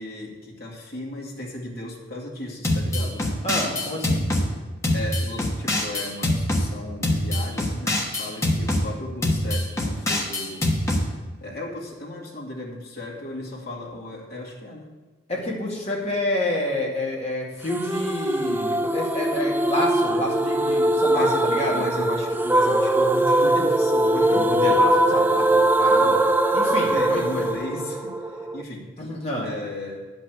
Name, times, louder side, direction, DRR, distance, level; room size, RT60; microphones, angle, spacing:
voice 1, 0.0-3.4 4.9-10.7 11.4-14.9 21.0-24.5 26.9-29.1 29.4-30.1, left 1 dB, 50° left, -4 dB, 2.3 m, -35 dB
sound 1, 2.6-4.5 4.8-6.6 7.0-8.8 9.2-11.0, left 1 dB, 15° left, 1.3 m, -24 dB
voice 2, 3.4-4.3 15.3-21.9 24.3-26.2 26.5-27.4 29.0-29.5, left 1 dB, 30° left, -3 dB, 2.2 m, -29 dB
sound 2, 17.7-28.6, right 1 dB, 10° right, 0.4 m, -21 dB
10.0 x 5.4 x 8.0 m, 1.3 s
head